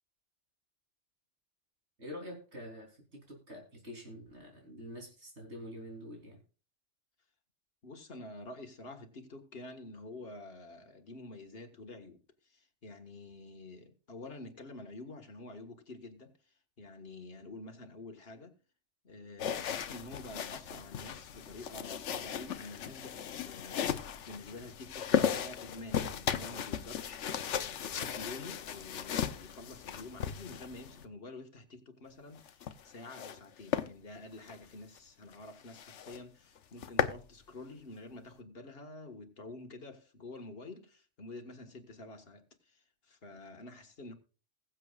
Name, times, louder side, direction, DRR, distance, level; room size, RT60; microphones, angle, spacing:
voice 1, 2.0-6.4, equal, 65° right, 3.8 m, -46 dB
voice 2, 7.8-18.6 19.0-44.1, left 2 dB, 55° left, 1.8 m, -48 dB
sound 1, 19.4-31.1 32.4-33.4 33.7-33.9 34.4-34.6 35.0-35.1 35.3-35.4 35.7-36.2 36.6-37.2, left 8 dB, 80° left, 1.1 m, -36 dB
21.0 x 7.6 x 2.4 m
omnidirectional pair, 1.2 m